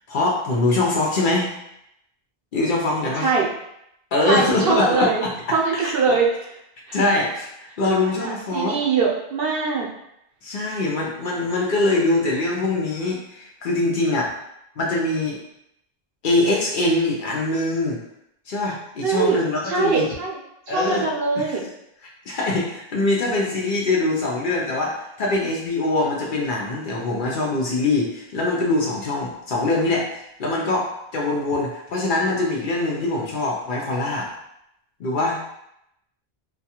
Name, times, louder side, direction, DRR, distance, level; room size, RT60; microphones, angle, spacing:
voice 1, 0.1-1.5 2.5-3.3 4.1-5.3 5.7-6.1 6.9-8.8 10.4-14.3 14.8-15.4 16.2-18.0 18.5-20.1 20.7-21.1 21.4-21.5 22.0-34.3 35.0-35.4, left 2 dB, 60° left, -2 dB, 0.7 m, -23 dB
voice 2, 4.3-5.2 5.5-6.6 6.9-7.0 7.9-9.9 19.0-19.4 19.6-20.4 20.7-21.7, right 4 dB, 70° right, -2 dB, 0.8 m, -22 dB
2.3 x 2.3 x 2.8 m, 0.80 s
omnidirectional pair, 1.0 m